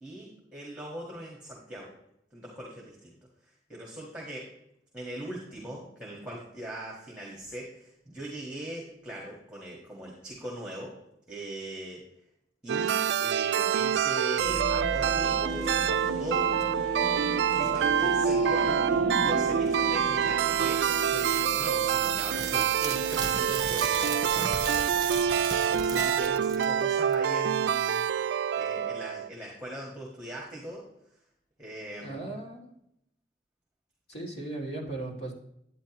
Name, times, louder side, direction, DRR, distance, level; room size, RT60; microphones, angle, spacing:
voice 1, 0.0-1.9 2.3-3.1 3.7-4.5 4.9-11.0 11.3-12.0 12.6-16.5 17.5-30.9 31.6-32.2, right 1 dB, 5° right, -3 dB, 1.6 m, -41 dB
sound 1, 12.7-29.3, right 8 dB, 75° right, 0.3 m, -26 dB
sound 2, 14.3-26.2, equal, 40° left, 1.5 m, -38 dB
sound 3, 22.2-26.8 27.1-27.2, right 4 dB, 20° right, 0.9 m, -37 dB
voice 2, 32.0-32.7 34.1-35.3, right 2 dB, 65° left, -2 dB, 2.5 m, -37 dB
10.0 x 8.7 x 3.0 m, 0.78 s
head